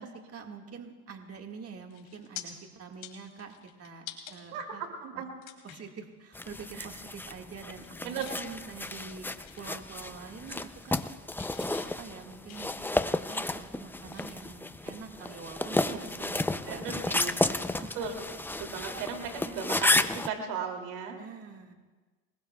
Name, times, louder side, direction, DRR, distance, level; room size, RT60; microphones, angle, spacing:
voice 1, 0.0-4.8 5.1-5.2 5.6-9.3 9.6-11.1 11.5-18.1 19.0-19.1 21.1-21.7, right 5 dB, 35° right, 2 dB, 1.8 m, -46 dB
sound 1, 1.3-1.6 1.9-2.4 2.9-4.4 4.8-4.9 5.4-5.9 6.3-6.5 6.8-7.3 7.6-8.4 8.8-10.1 10.4-11.1 11.4-14.5 15.0-16.8 17.1-17.3 19.2-19.3, left 13 dB, 80° left, 2.9 m, -49 dB
voice 2, 4.5-5.3 6.8-6.9 8.0-8.3 15.6-16.0 16.7-17.4 17.9-18.3 18.6-21.2, right 6 dB, 85° right, 3 dB, 2.8 m, -36 dB
sound 2, 6.3-20.3, left 2 dB, 5° left, 0.4 m, -32 dB
28.0 x 21.0 x 2.3 m, 1.3 s
supercardioid pair, 90°, 42 cm